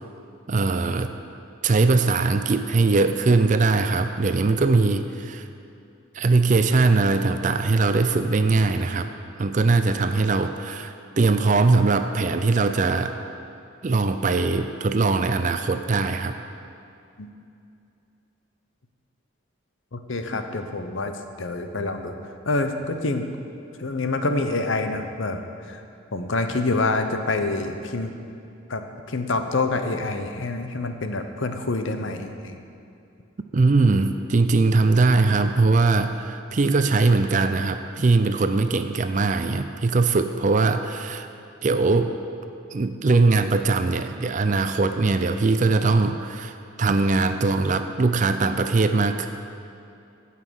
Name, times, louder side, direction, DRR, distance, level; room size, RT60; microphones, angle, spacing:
voice 1, 0.5-1.1 1.6-5.4 6.1-9.1 9.4-13.1 13.8-16.3 33.5-41.3 41.6-42.1 42.7-49.3, right 3 dB, 35° right, 8 dB, 0.4 m, -21 dB
voice 2, 19.9-21.1 21.4-22.2 22.4-23.3 23.8-25.8 26.1-28.1 28.7-28.8 29.1-32.6, left 2 dB, 70° left, 6 dB, 0.8 m, -26 dB
16.0 x 5.7 x 6.3 m, 2.6 s
head